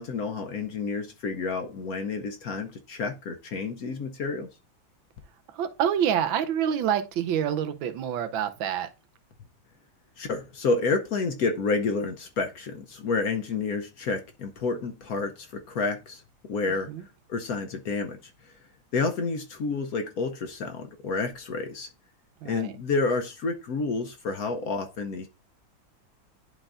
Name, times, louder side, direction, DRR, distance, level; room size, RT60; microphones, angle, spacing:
voice 1, 0.0-4.5 10.2-16.2 16.5-16.9 17.3-18.5 18.9-21.9 22.4-25.3, left 4 dB, 65° left, 1.0 m, -29 dB
voice 2, 5.5-8.9 16.9-17.0 22.4-22.8, right 9 dB, 85° right, 1.5 m, -27 dB
11.0 x 4.1 x 2.5 m
omnidirectional pair, 2.1 m